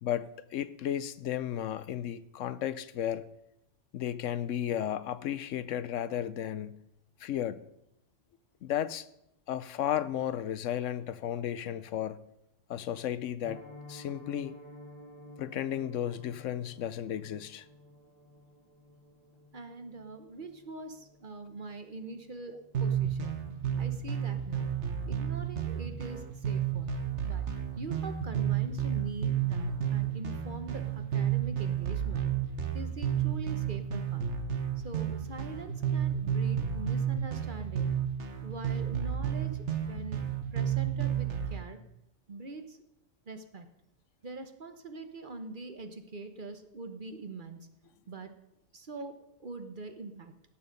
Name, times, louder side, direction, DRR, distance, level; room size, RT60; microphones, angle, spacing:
voice 1, 0.0-3.2 3.9-6.8 7.2-7.6 8.6-9.1 9.5-12.2 12.7-13.6 13.9-14.5 15.4-17.6, left 10 dB, 75° left, 1.0 m, -34 dB
Piano, 13.4-24.3 24.6-24.8 25.1-25.3 25.6-25.9 26.2-26.3, left 1 dB, 25° right, 4.1 m, -53 dB
voice 2, 19.5-23.5 23.8-24.7 25.1-27.5 27.8-32.3 32.7-34.3 34.8-37.9 38.4-40.2 40.5-41.8 42.3-42.8 43.3-43.7 44.2-47.8 48.1-48.3 48.7-50.4, right 3 dB, 45° right, 1.1 m, -43 dB
sound 1, 22.7-41.6, right 9 dB, 65° right, 1.5 m, -31 dB
17.5 x 7.1 x 5.3 m
omnidirectional pair, 1.3 m